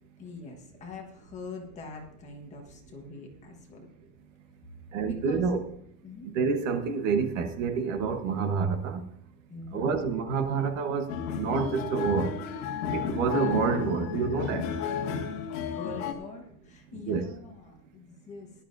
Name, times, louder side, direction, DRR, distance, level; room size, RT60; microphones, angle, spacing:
voice 1, 0.2-3.9 5.0-5.4 6.0-6.3 9.5-9.9 15.6-18.5, left 3 dB, 15° left, 1.3 m, -44 dB
voice 2, 4.9-5.6 6.2-9.0 9.7-12.4 12.9-14.7 16.9-17.3, right 5 dB, 50° right, 1.3 m, -28 dB
sound 1, 11.1-16.1, left 6 dB, 50° left, 1.9 m, -32 dB
17.5 x 11.5 x 2.6 m
supercardioid pair, 180°, 47 cm